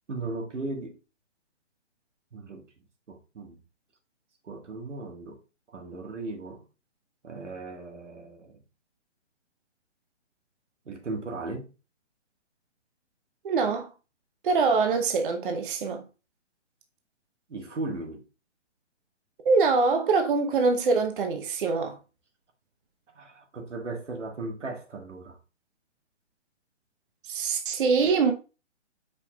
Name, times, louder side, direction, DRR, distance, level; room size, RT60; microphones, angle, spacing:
voice 1, 0.1-1.0 2.3-2.6 3.1-3.6 4.4-5.4 5.7-6.6 7.2-8.6 10.8-11.7 17.5-18.2 23.1-25.4, right 3 dB, 90° right, 1.5 m, -37 dB
voice 2, 13.4-13.9 14.4-16.0 19.4-22.0 27.3-28.3, right 4 dB, 45° right, 0.7 m, -24 dB
5.2 x 4.6 x 2.2 m
hypercardioid pair, 150°, 35 cm